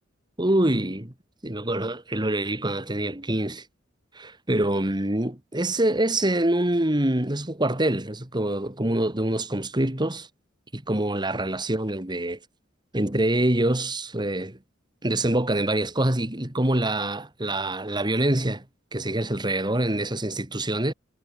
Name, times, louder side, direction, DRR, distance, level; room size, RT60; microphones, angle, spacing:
voice 1, 0.4-1.1 1.4-3.6 4.1-10.3 10.7-12.4 12.9-14.6 15.0-18.6 18.9-20.9, right 1 dB, 25° right, 2.4 m, -25 dB
head